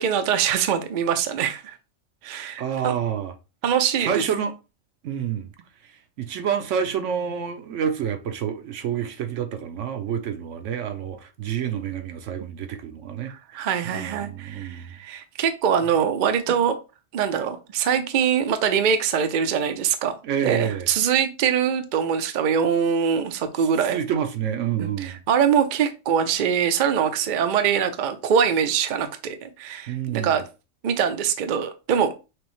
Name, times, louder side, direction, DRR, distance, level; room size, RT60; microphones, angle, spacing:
voice 1, 0.0-1.7 2.2-2.9 3.6-4.2 13.3-16.8 17.1-20.2 20.4-24.0 24.8-30.4 30.8-32.1, right 7 dB, 60° right, 0.5 m, -23 dB
voice 2, 2.6-3.3 4.0-4.5 5.0-5.5 6.2-14.9 20.2-20.9 23.9-25.2 29.9-30.4, right 8 dB, 75° right, 1.0 m, -28 dB
6.0 x 2.0 x 3.0 m
omnidirectional pair, 1.3 m